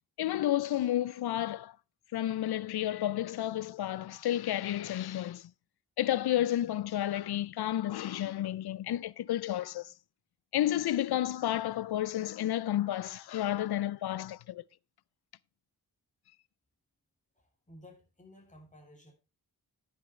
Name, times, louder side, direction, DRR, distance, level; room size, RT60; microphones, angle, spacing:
voice 1, 0.2-1.7 2.1-5.5 6.0-9.9 10.5-14.6, left 12 dB, 85° left, 0.5 m, -31 dB
voice 2, 17.3-19.1, left 1 dB, 20° left, 3.1 m, -55 dB
10.5 x 9.5 x 3.2 m
wide cardioid pair, 110°, 37 cm